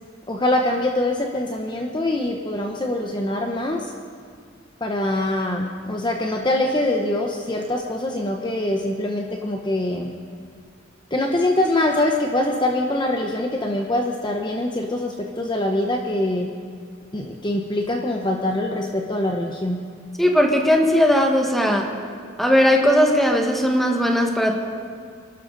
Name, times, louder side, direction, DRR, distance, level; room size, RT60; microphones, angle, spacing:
voice 1, 0.3-3.9 4.8-10.1 11.1-16.5 17.1-19.8, left 1 dB, 25° left, 1 dB, 0.9 m, -24 dB
voice 2, 20.2-21.9 22.4-24.6, equal, ahead, 1 dB, 1.5 m, -18 dB
28.5 x 12.5 x 4.0 m, 2.1 s
head